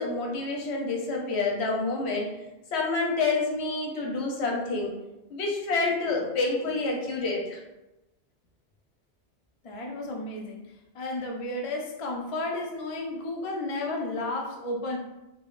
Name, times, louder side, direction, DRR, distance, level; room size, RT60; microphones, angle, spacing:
voice 1, 0.0-2.3 2.7-4.9 5.3-7.6, left 3 dB, 80° left, 0 dB, 0.9 m, -28 dB
voice 2, 9.6-10.7 10.9-15.0, left 2 dB, 60° left, 1 dB, 0.3 m, -32 dB
3.4 x 2.0 x 2.4 m, 0.98 s
omnidirectional pair, 1.1 m